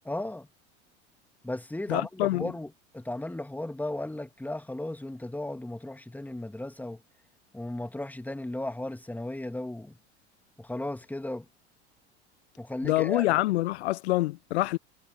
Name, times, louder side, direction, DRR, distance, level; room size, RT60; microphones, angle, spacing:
voice 1, 0.0-0.5 1.4-7.0 7.5-9.9 10.6-11.5 12.6-13.3, left 1 dB, 5° left, 2.1 m, -35 dB
voice 2, 1.9-2.5 12.8-14.8, left 17 dB, 65° left, 0.7 m, -26 dB
figure-of-eight pair, 70°, 35 cm